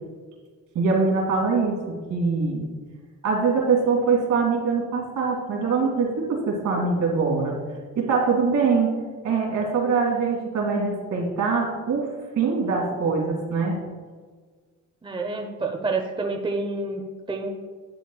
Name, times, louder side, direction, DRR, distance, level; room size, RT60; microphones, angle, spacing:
voice 1, 0.7-2.7 3.2-7.6 8.0-8.9 9.2-12.1 12.4-13.8, right 4 dB, 80° right, -1 dB, 2.7 m, -23 dB
voice 2, 15.0-17.5, right 3 dB, 15° right, 3 dB, 0.9 m, -28 dB
11.5 x 8.3 x 2.3 m, 1.5 s
cardioid pair, 90°, 30 cm